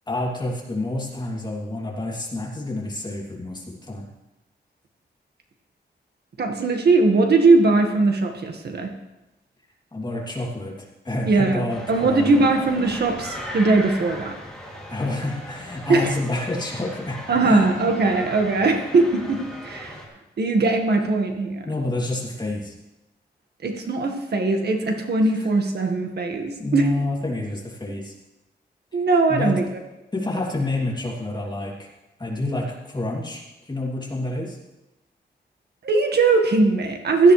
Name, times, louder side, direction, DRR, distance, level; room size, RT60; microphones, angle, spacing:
voice 1, 0.1-4.1 9.9-10.7 11.0-12.4 14.9-17.7 21.6-22.7 25.2-25.5 26.6-28.1 29.3-29.5 30.1-31.9 32.2-34.6, left 2 dB, 25° left, -3 dB, 2.9 m, -28 dB
voice 2, 6.4-8.9 11.2-14.3 15.9-16.1 17.3-20.0 20.4-21.7 23.6-26.9 28.9-29.6 35.8-37.3, right 3 dB, 65° right, 4 dB, 1.6 m, -20 dB
sound 1, 11.7-20.1, equal, 5° left, 2.9 m, -38 dB
16.5 x 13.5 x 3.3 m, 1.0 s
wide cardioid pair, 135°, 18 cm